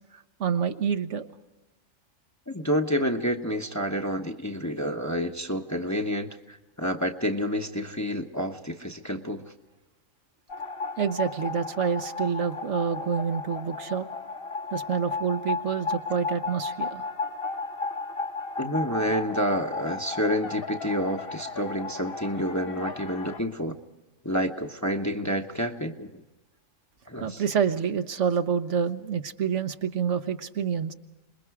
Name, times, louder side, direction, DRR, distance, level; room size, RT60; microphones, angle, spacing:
voice 1, 0.4-1.3 11.0-14.1 14.7-17.0 27.2-30.9, right 7 dB, 65° right, 8 dB, 1.3 m, -27 dB
voice 2, 2.5-9.4 18.6-23.8 24.2-26.2 27.1-27.4, equal, 15° left, 4 dB, 0.9 m, -29 dB
sound 1, 10.5-23.4, left 4 dB, 50° left, 1.3 m, -34 dB
26.5 x 21.5 x 4.8 m, 1.1 s
omnidirectional pair, 1.3 m